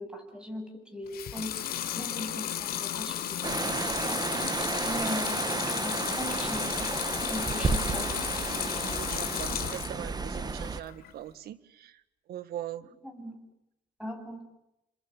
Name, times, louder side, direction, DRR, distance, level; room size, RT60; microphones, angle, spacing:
voice 1, 0.0-1.6 1.9-4.2 4.8-7.0 7.3-8.1 13.0-13.4 14.0-14.4, left 1 dB, 5° right, 5 dB, 8.0 m, -39 dB
Water tap faucet / Sink (filling or washing) / Liquid, 1.1-10.0 10.4-11.1, left 11 dB, 65° left, 3.7 m, -34 dB
sound 1, 3.4-10.8, right 4 dB, 25° right, 1.8 m, -32 dB
Bowed string instrument, 5.0-10.4, left 3 dB, 25° left, 4.6 m, -57 dB
voice 2, 8.8-12.0 12.3-12.9, right 12 dB, 70° right, 15 dB, 1.8 m, -41 dB
30.0 x 26.5 x 7.2 m, 0.87 s
cardioid pair, 110°, 17 cm